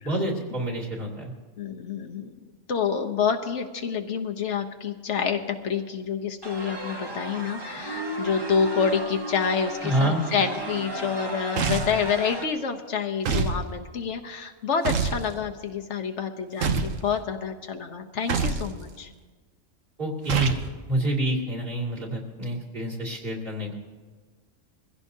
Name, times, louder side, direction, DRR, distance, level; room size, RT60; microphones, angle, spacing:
voice 1, 0.0-1.3 9.8-10.3 20.0-20.6 20.9-23.8, right 1 dB, 45° right, -2 dB, 2.6 m, -27 dB
voice 2, 1.6-2.3 2.7-19.1, left 6 dB, 65° left, 5 dB, 1.1 m, -28 dB
sound 1, 6.4-12.5, right 1 dB, 20° right, 1.0 m, -34 dB
sound 2, 11.6-12.0 13.2-13.6 14.8-15.2 16.6-17.0 18.3-18.7 20.3-20.7, right 5 dB, 80° right, 1.3 m, -25 dB
22.0 x 16.0 x 2.7 m, 1.4 s
omnidirectional pair, 1.3 m